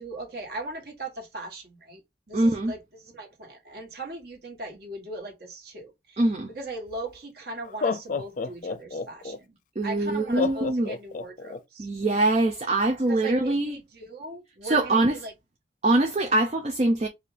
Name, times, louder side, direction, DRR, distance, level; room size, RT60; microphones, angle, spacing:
voice 1, 0.0-2.0 2.3-6.2 6.5-9.6 9.8-11.9 13.1-15.3, right 2 dB, 55° right, 1.7 m, -39 dB
voice 2, 2.3-2.7 6.2-6.5 9.8-10.9 11.8-13.8 14.6-15.2 15.8-17.1, right 2 dB, 35° right, 0.5 m, -23 dB
Laughter, 6.9-7.0 7.6-9.4 10.4-11.6, left 4 dB, 45° left, 0.4 m, -29 dB
4.8 x 2.5 x 3.3 m
head